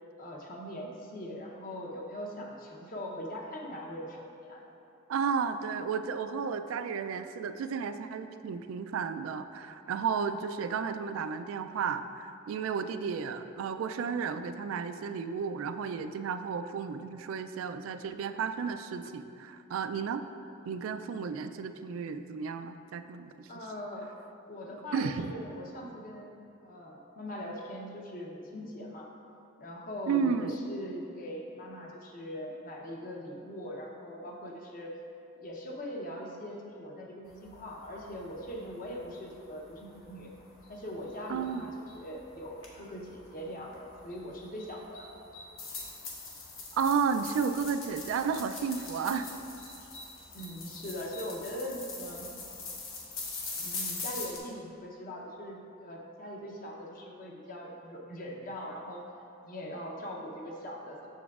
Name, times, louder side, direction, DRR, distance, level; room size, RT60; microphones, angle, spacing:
voice 1, 0.2-4.7 12.8-13.0 23.5-24.1 24.5-26.3 26.6-29.1 29.6-34.9 35.4-40.3 40.7-45.1 50.3-52.3 53.6-59.1 59.4-61.1, equal, 45° left, 0 dB, 0.7 m, -41 dB
voice 2, 5.1-20.2 20.7-23.5 24.9-25.3 30.1-30.5 41.3-41.7 46.7-49.3, right 6 dB, 80° right, 9 dB, 0.3 m, -33 dB
sound 1, 37.3-54.4, left 3 dB, 75° left, 1.1 m, -44 dB
7.1 x 6.7 x 2.4 m, 2.8 s
head